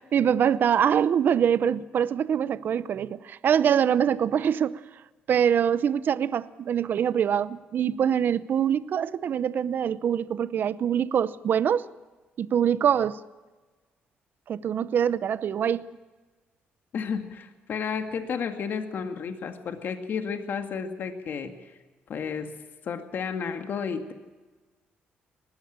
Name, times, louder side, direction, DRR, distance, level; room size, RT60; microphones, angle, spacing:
voice 1, 0.1-4.8 5.3-11.9 12.4-13.2 14.5-15.9, right 8 dB, 60° right, 0.7 m, -24 dB
voice 2, 16.9-21.7 22.1-22.5 22.8-24.1, left 6 dB, 60° left, 2.1 m, -32 dB
20.0 x 15.5 x 8.8 m
cardioid pair, 95°, 4 cm